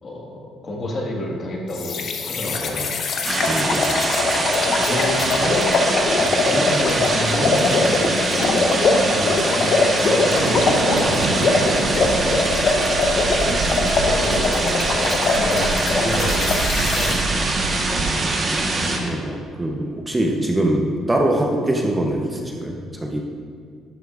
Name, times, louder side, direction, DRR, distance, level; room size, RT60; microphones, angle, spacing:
voice 1, 0.0-2.9 4.7-5.7 6.2-11.2 11.8-12.4 12.7-12.8 13.4-14.9 15.3-18.3 18.7-19.0, left 1 dB, 40° left, -1 dB, 1.6 m, -30 dB
sound 1, 1.7-17.2, left 3 dB, 55° left, 0.8 m, -22 dB
sound 2, 3.2-19.0, right 2 dB, 35° right, 1.2 m, -23 dB
voice 2, 3.4-3.9 19.0-23.2, right 1 dB, 15° right, 0 dB, 0.7 m, -23 dB
sound 3, 10.4-18.9, right 4 dB, 75° right, 0.5 m, -29 dB
12.0 x 7.3 x 2.4 m, 2.1 s
cardioid pair, 105°, 0 cm